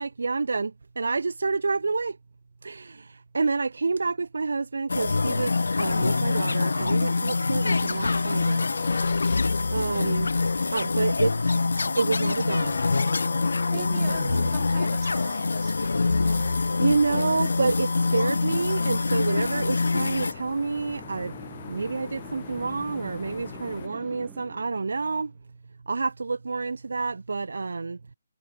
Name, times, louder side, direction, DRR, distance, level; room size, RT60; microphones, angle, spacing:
voice 1, 0.0-2.2 2.6-8.6 9.7-10.3 10.7-11.3 12.0-12.8 13.7-14.5 16.8-21.3 21.7-25.3 25.9-28.0, right 4 dB, 70° right, 0.5 m, -28 dB
sound 1, 4.9-20.3, left 3 dB, 75° left, 1.3 m, -25 dB
sound 2, 7.7-23.9, left 7 dB, 50° left, 3.8 m, -41 dB
voice 2, 13.7-16.6, right 15 dB, 30° right, 2.7 m, -43 dB
sound 3, 18.7-25.4, right 9 dB, 10° right, 1.3 m, -49 dB
figure-of-eight pair, 150°, 0 cm